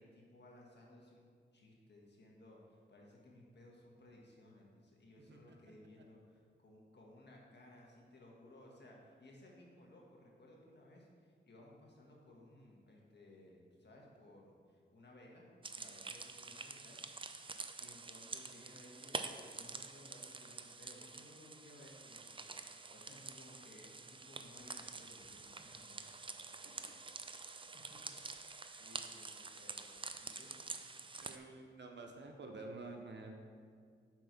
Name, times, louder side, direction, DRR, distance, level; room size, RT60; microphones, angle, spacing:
voice 1, 0.0-17.0 17.8-26.1 26.5-27.0 27.9-28.2 28.5-30.6, left 1 dB, 55° left, -2 dB, 1.5 m, -60 dB
sound 1, 15.6-31.4, right 4 dB, 25° right, 0.4 m, -48 dB
voice 2, 31.2-33.3, right 3 dB, 60° right, 3 dB, 0.9 m, -49 dB
6.0 x 4.5 x 5.9 m, 2.1 s
cardioid pair, 60°, 21 cm